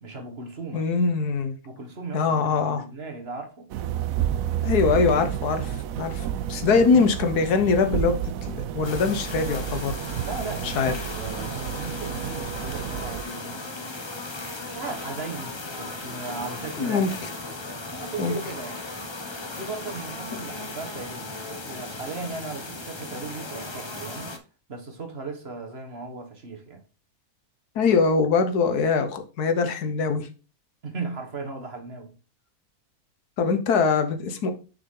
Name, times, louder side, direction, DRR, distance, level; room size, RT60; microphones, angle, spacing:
voice 1, 0.0-0.8 1.6-3.7 6.6-6.8 10.2-13.7 14.7-17.1 17.9-18.8 19.6-24.3 24.7-26.8 30.8-32.1, right 3 dB, 45° right, 1.6 m, -37 dB
voice 2, 0.7-1.6 2.1-2.8 4.6-8.1 8.4-10.0 10.6-11.1 16.8-17.1 18.2-18.3 27.7-30.3 33.4-34.5, left 5 dB, 85° left, 1.6 m, -23 dB
sound 1, 3.7-13.2, right 11 dB, 70° right, 0.9 m, -30 dB
sound 2, 8.8-24.4, left 2 dB, 25° left, 0.7 m, -36 dB
6.9 x 5.6 x 3.7 m
omnidirectional pair, 1.6 m